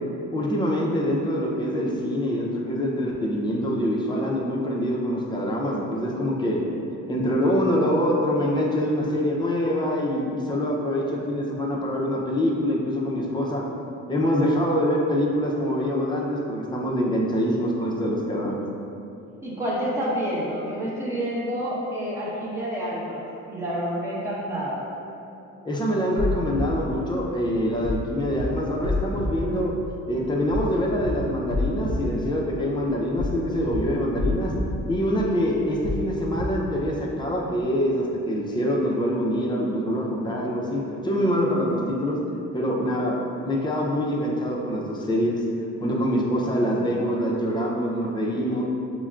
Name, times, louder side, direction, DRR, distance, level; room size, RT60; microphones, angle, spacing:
voice 1, 0.3-6.6 7.1-13.6 14.1-18.6 25.6-29.7 30.1-34.5 34.9-42.2 42.5-45.4 45.8-48.6, equal, 15° left, -3 dB, 0.6 m, -25 dB
voice 2, 19.4-24.9, equal, 10° right, -8 dB, 1.0 m, -28 dB
sound 1, 26.2-26.6 27.8-28.0 28.3-28.4 28.8-29.3 30.5-30.7 31.0-31.1 31.5-31.9 33.2-33.4 33.7-33.8 34.2-34.6 35.8-36.0 36.3-36.4, left 3 dB, 35° right, 0.7 m, -27 dB
5.7 x 2.2 x 2.4 m, 2.8 s
cardioid pair, 90°, 30 cm